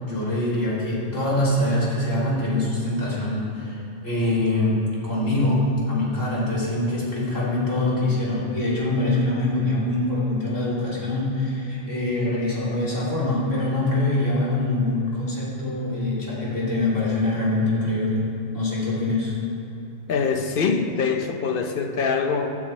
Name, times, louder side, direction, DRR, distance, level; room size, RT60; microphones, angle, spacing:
voice 1, 0.0-4.8 5.0-18.2 18.5-19.4, left 2 dB, 70° left, -8 dB, 3.4 m, -24 dB
voice 2, 20.1-22.6, left 5 dB, 50° left, 5 dB, 0.9 m, -24 dB
16.5 x 9.6 x 3.3 m, 3.0 s
omnidirectional pair, 1.3 m